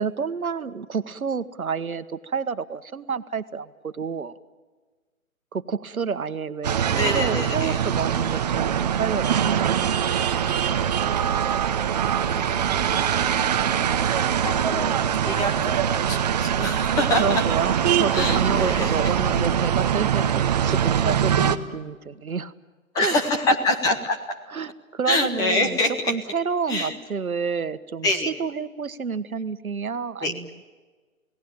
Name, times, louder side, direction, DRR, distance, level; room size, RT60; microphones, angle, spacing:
voice 1, 0.0-4.4 5.5-9.7 17.2-22.5 22.9-23.2 24.5-25.8 26.1-30.5, right 5 dB, 80° right, 13 dB, 1.5 m, -29 dB
sound 1, 6.6-21.6, right 9 dB, 30° right, 0.9 m, -23 dB
voice 2, 7.0-7.8 12.3-13.2 13.6-14.9 15.2-17.4 18.1-19.0 22.9-24.2 25.1-26.1 26.7-27.0 28.0-28.3 30.2-30.3, left 2 dB, 10° left, 5 dB, 1.0 m, -26 dB
29.5 x 18.0 x 8.8 m, 1.4 s
figure-of-eight pair, 150°, 42 cm